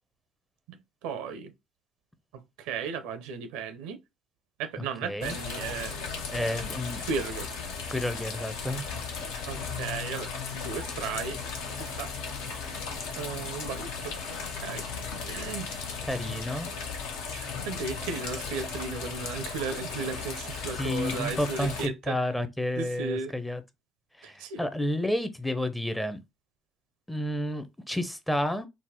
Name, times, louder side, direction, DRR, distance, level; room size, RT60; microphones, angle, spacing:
voice 1, 0.7-1.5 2.3-4.0 4.6-6.3 7.0-7.5 9.4-12.1 13.2-14.1 14.5-14.8 15.2-15.7 17.3-22.2 22.8-23.3 24.2-24.6, right 5 dB, 65° right, 0.5 m, -35 dB
voice 2, 4.8-5.4 6.3-7.1 7.9-8.8 16.1-16.7 20.7-23.6 24.2-26.2 27.1-28.7, left 1 dB, 5° left, 0.5 m, -31 dB
sound 1, 5.2-21.9, left 5 dB, 65° left, 0.6 m, -36 dB
3.9 x 2.1 x 2.7 m
figure-of-eight pair, 55°, 0 cm